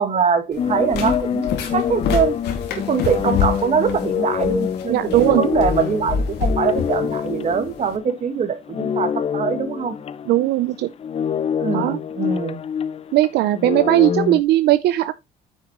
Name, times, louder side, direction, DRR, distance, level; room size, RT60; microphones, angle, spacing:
voice 1, 0.0-2.4 2.9-9.9 11.6-12.6, right 6 dB, 40° right, 1.7 m, -23 dB
sound 1, 0.5-7.9, left 5 dB, 80° left, 2.3 m, -28 dB
sound 2, 0.6-8.4 8.7-14.4, left 8 dB, 35° left, 0.5 m, -26 dB
voice 2, 4.9-5.5 10.3-10.9 11.7-12.0 13.1-15.1, right 15 dB, 80° right, 0.6 m, -18 dB
9.5 x 6.4 x 3.0 m
cardioid pair, 110°, 17 cm